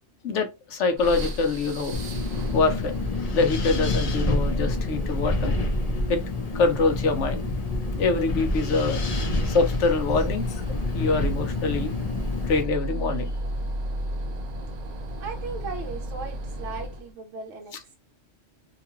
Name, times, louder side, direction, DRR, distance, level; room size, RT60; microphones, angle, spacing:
voice 1, 0.2-2.0 2.5-2.9 3.3-5.5 6.1-6.2 6.5-7.4 8.0-9.0 9.5-10.4 10.9-11.9 12.5-13.3, left 3 dB, 70° left, 1.0 m, -24 dB
sound 1, 1.0-17.1, equal, 55° right, 0.4 m, -35 dB
Wind, 1.9-12.6, left 2 dB, 45° left, 0.5 m, -28 dB
voice 2, 15.2-18.0, right 4 dB, 75° right, 1.0 m, -37 dB
2.9 x 2.3 x 2.9 m
omnidirectional pair, 1.3 m